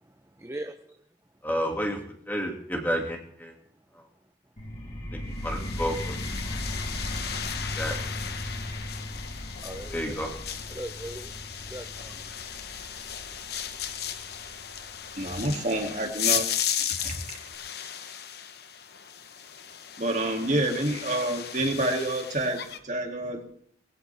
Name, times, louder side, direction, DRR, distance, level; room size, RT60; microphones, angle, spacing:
voice 1, 0.4-0.9 9.6-10.2 10.7-11.3 11.7-12.4, right 1 dB, 15° right, 6 dB, 0.8 m, -39 dB
voice 2, 1.4-2.0 2.3-3.5 5.1-6.2 6.5-6.6 7.8-8.0 9.9-10.3, equal, 10° left, 2 dB, 2.4 m, -30 dB
sound 1, 4.6-16.0, left 1 dB, 40° left, 5.6 m, -37 dB
sound 2, 5.4-22.8, left 9 dB, 65° left, 1.1 m, -35 dB
voice 3, 15.2-16.5 17.0-17.2 20.0-23.4, right 1 dB, 45° right, 2 dB, 2.7 m, -28 dB
21.0 x 16.0 x 3.5 m, 0.65 s
head